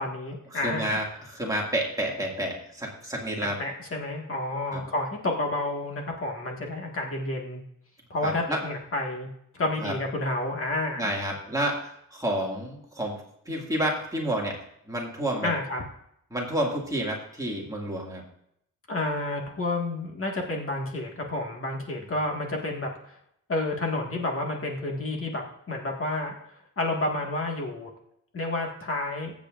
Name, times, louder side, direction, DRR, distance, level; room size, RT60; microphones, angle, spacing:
voice 1, 0.0-1.0 3.6-7.6 8.1-9.3 9.5-11.1 15.4-15.8 18.9-23.2 23.5-27.9 28.3-29.3, left 2 dB, 40° left, 0 dB, 1.8 m, -30 dB
voice 2, 0.5-3.6 4.7-4.8 8.2-8.6 9.8-9.9 11.0-15.5 16.3-18.2, right 1 dB, 10° right, -2 dB, 2.2 m, -30 dB
22.0 x 8.2 x 2.5 m, 0.74 s
wide cardioid pair, 160°, 33 cm